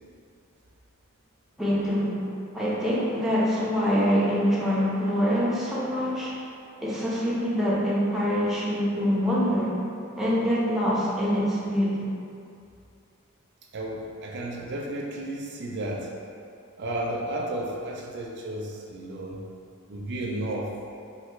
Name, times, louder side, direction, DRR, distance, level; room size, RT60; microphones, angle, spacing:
voice 1, 1.6-2.3 2.5-6.3 6.8-9.8 10.2-12.1, equal, ahead, -7 dB, 0.5 m, -25 dB
voice 2, 13.7-16.1 16.8-19.4 19.9-20.7, right 1 dB, 55° right, -1 dB, 0.4 m, -33 dB
3.2 x 2.5 x 3.0 m, 2.5 s
head